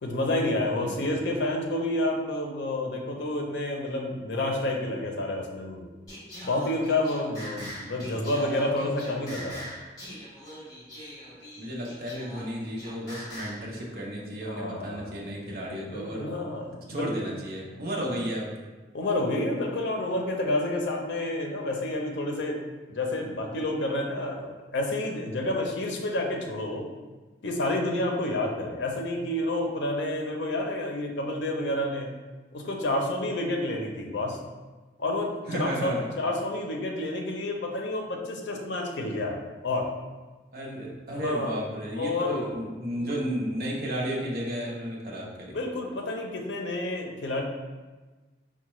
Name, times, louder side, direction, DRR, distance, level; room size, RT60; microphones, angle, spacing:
voice 1, 0.0-5.9 6.4-9.7 14.4-15.2 15.5-15.6 15.9-17.2 18.9-22.6 22.9-26.9 27.4-32.1 32.5-34.4 35.0-39.4 39.6-39.9 41.1-41.5 41.9-42.5 43.0-43.1 45.5-47.4, left 1 dB, 80° left, 1 dB, 0.5 m, -29 dB
voice 2, 0.8-1.2 11.6-16.3 16.9-18.5 35.5-36.1 40.5-45.6, equal, 50° right, -3 dB, 0.6 m, -33 dB
Singing, 6.1-13.7, equal, 20° left, 1.0 m, -42 dB
4.5 x 2.1 x 3.0 m, 1.3 s
head